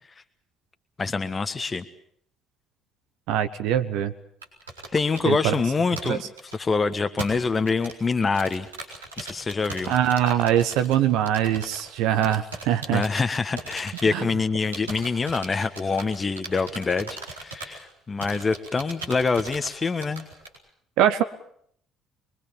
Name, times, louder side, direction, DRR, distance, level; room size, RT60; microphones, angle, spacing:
voice 1, 1.0-1.8 4.9-6.2 6.5-8.7 9.2-9.9 12.9-20.3, left 4 dB, 30° left, 9 dB, 1.4 m, -25 dB
voice 2, 3.3-4.1 5.2-5.5 6.0-6.2 9.9-13.0 14.1-14.3 21.0-21.2, right 10 dB, 65° right, 11 dB, 1.1 m, -22 dB
sound 1, 4.4-6.8 7.2-11.9 12.2-14.5 14.7-17.9 18.2-20.6, right 3 dB, 85° right, 4.5 m, -38 dB
24.5 x 22.5 x 7.3 m, 0.65 s
figure-of-eight pair, 50°, 0 cm